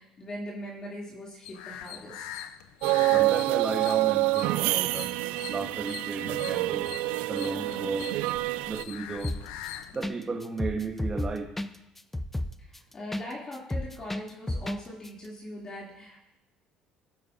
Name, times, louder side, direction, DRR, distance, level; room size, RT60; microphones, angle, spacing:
voice 1, 0.0-2.3 12.6-16.2, left 1 dB, 35° left, -3 dB, 2.5 m, -41 dB
sound 1, 1.4-10.1, left 11 dB, 85° left, 0.5 m, -43 dB
sound 2, 2.8-8.8, right 19 dB, 80° right, 0.3 m, -27 dB
voice 2, 3.0-5.1 5.5-6.9 7.3-8.1 8.7-9.4 9.9-11.5, right 3 dB, 25° right, 1 dB, 1.0 m, -34 dB
sound 3, 9.2-9.7 10.0-10.2 10.4-13.3 13.5-14.8 15.0-15.1, left 1 dB, 10° left, 0.5 m, -31 dB
18.5 x 6.6 x 2.5 m, 0.88 s
supercardioid pair, 95°, 2 cm